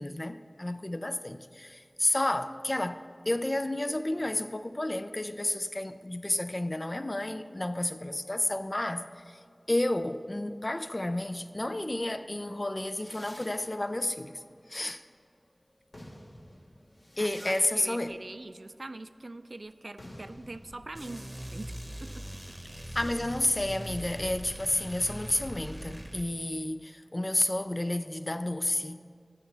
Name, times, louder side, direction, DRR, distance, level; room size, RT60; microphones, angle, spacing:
voice 1, 0.0-9.4 9.7-14.4 14.7-15.0 17.2-18.1 22.9-29.0, left 1 dB, 40° left, 0.4 m, -31 dB
sound 1, 12.8-15.3 15.7-23.2, left 1 dB, 70° left, 1.7 m, -52 dB
voice 2, 17.2-21.3 21.5-22.3, right 2 dB, 65° right, 0.3 m, -43 dB
sound 2, 20.9-26.3, right 1 dB, 20° right, 0.9 m, -41 dB
18.0 x 7.1 x 3.4 m
wide cardioid pair, 50°, 0 cm